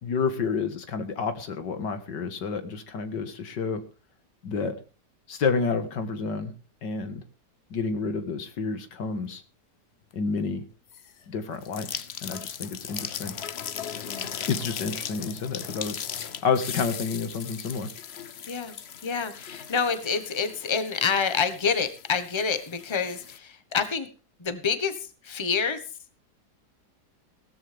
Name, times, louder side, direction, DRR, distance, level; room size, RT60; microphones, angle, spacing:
voice 1, 0.0-3.8 4.4-4.7 5.3-6.5 6.8-7.2 7.7-9.4 10.1-10.6 11.3-13.3 14.5-16.0 16.4-17.9, left 5 dB, 90° left, 8 dB, 2.3 m, -29 dB
sound 1, 10.9-11.2 11.6-23.4, left 8 dB, 50° left, 0.8 m, -38 dB
voice 2, 19.0-24.1 24.4-25.8, left 6 dB, 20° left, 10 dB, 1.2 m, -28 dB
17.0 x 14.0 x 3.5 m, 0.35 s
omnidirectional pair, 1.8 m